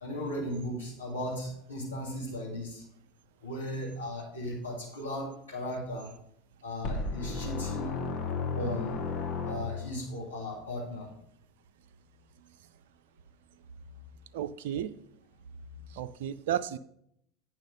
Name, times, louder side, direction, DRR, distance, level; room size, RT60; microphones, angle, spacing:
voice 1, 0.0-2.8 3.4-6.1 6.6-8.0 8.6-9.0 9.4-11.1 15.7-15.8, left 1 dB, 80° left, -5 dB, 2.2 m, -36 dB
sound 1, 6.8-10.1, left 4 dB, 40° left, 1.2 m, -34 dB
voice 2, 14.3-14.9 15.9-16.8, right 10 dB, 60° right, 11 dB, 0.4 m, -33 dB
8.9 x 5.9 x 5.2 m, 0.71 s
figure-of-eight pair, 75°, 0 cm